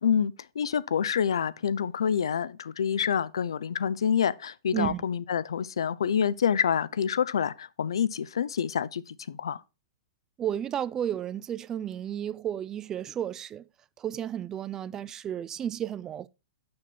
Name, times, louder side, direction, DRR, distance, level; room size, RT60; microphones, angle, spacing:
voice 1, 0.0-9.6, left 7 dB, 85° left, 0.5 m, -27 dB
voice 2, 4.7-5.0 10.4-13.6 14.0-16.3, right 10 dB, 20° right, 0.3 m, -32 dB
6.3 x 6.1 x 4.1 m
hypercardioid pair, 135°, 2 cm